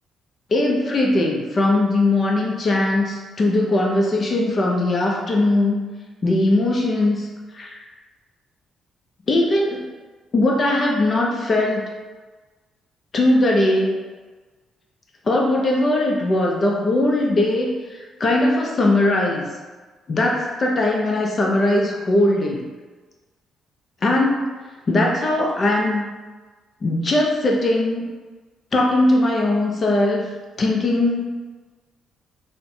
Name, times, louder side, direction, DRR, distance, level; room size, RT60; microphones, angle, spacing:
voice 1, 0.5-5.8 6.2-7.3 7.5-7.8 9.3-9.9 10.3-11.9 13.1-14.0 15.2-19.5 20.1-22.7 24.0-24.5 24.9-26.0 26.8-28.1 28.7-30.3 30.6-31.2, left 2 dB, 40° left, -1 dB, 0.6 m, -20 dB
4.3 x 2.1 x 2.7 m, 1.3 s
cardioid pair, 90°, 0 cm